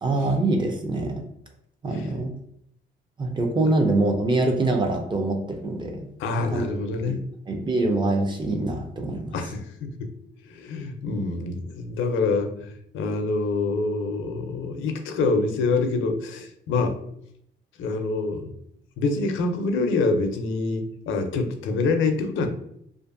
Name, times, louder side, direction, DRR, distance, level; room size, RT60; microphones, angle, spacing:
voice 1, 0.0-1.2 1.8-2.3 3.2-6.1 6.5-6.7 7.1-7.2 7.5-9.3, right 2 dB, 25° right, 3 dB, 0.4 m, -24 dB
voice 2, 6.2-7.3 9.3-9.9 10.5-17.0 17.8-18.5 19.0-22.5, left 3 dB, 80° left, 6 dB, 0.5 m, -26 dB
2.5 x 2.5 x 2.5 m, 0.71 s
cardioid pair, 125°, 20 cm